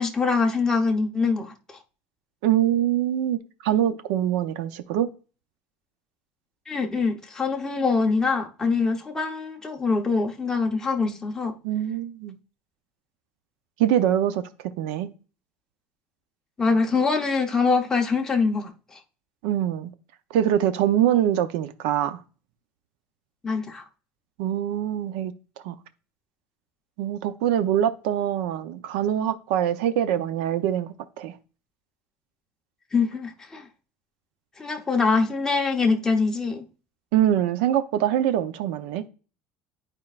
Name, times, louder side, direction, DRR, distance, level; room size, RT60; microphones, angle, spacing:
voice 1, 0.0-1.8 6.7-11.5 16.6-19.0 23.4-23.8 32.9-33.7 34.6-36.6, left 4 dB, 10° left, 0.9 m, -24 dB
voice 2, 2.4-5.1 11.6-12.4 13.8-14.4 14.8-15.1 19.4-19.9 20.3-22.2 24.4-25.3 25.6-25.8 27.0-31.4 37.1-39.1, right 11 dB, 85° right, 0.7 m, -24 dB
10.5 x 4.5 x 2.4 m
cardioid pair, 155°, 5 cm